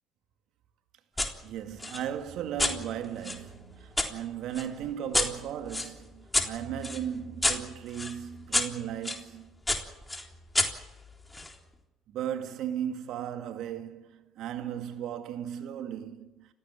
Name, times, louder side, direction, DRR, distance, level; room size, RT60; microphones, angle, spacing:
sound 1, 1.2-1.3 1.8-4.1 4.5-9.2 9.7-11.5, left 2 dB, 15° left, 3.7 m, -31 dB
voice 1, 1.4-9.6 12.1-16.5, right 10 dB, 65° right, 2.2 m, -36 dB
29.5 x 15.5 x 7.3 m
hypercardioid pair, 60°, 0 cm